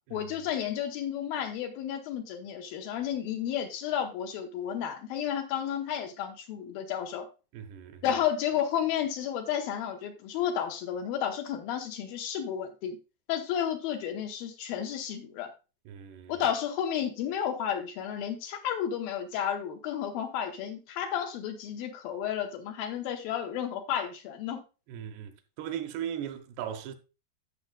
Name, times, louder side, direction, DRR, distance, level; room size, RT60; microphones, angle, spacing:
voice 1, 0.1-7.3 8.0-13.0 13.3-15.5 16.3-24.6, left 9 dB, 75° left, 2.6 m, -32 dB
voice 2, 7.5-8.0 15.9-16.4 24.9-27.0, right 9 dB, 80° right, 3.0 m, -38 dB
14.0 x 6.3 x 2.3 m
omnidirectional pair, 4.6 m